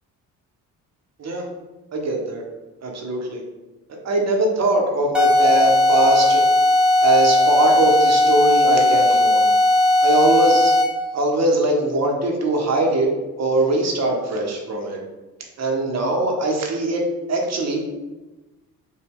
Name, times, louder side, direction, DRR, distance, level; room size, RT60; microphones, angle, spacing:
voice 1, 1.9-2.4 2.8-3.4 3.9-6.4 7.0-9.5 10.0-10.7 11.1-13.1 13.4-15.0 15.6-17.9, right 2 dB, 35° right, 1 dB, 0.8 m, -21 dB
sound 1, 5.1-11.0, left 1 dB, ahead, 0.8 m, -17 dB
5.2 x 2.1 x 3.6 m, 1.1 s
figure-of-eight pair, 40°, 47 cm